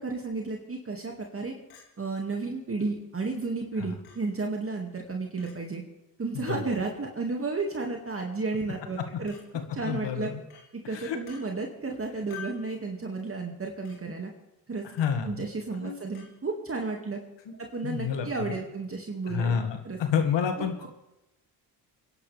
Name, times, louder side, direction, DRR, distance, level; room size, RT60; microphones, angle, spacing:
voice 1, 0.0-1.5 2.0-5.8 6.2-9.3 9.7-10.3 10.7-14.3 14.7-14.8 15.2-17.2 17.6-20.2, right 3 dB, 25° right, 1 dB, 2.2 m, -33 dB
Chink clink, 1.7-1.9 2.8-2.9 4.0-4.2 5.4-5.5 6.5-6.6 7.8-8.0 9.3-9.4 10.5-10.7 11.3-11.4 12.3-12.7 13.8-14.0 15.0-15.2 16.1-16.3, left 7 dB, 75° left, 3.6 m, -47 dB
voice 2, 9.8-10.4 10.9-11.2 14.9-15.5 15.7-16.0 17.5-17.6 17.8-18.5 19.3-20.9, left 7 dB, 55° left, 6 dB, 2.1 m, -29 dB
28.0 x 11.0 x 3.5 m, 0.93 s
hypercardioid pair, 60°, 50 cm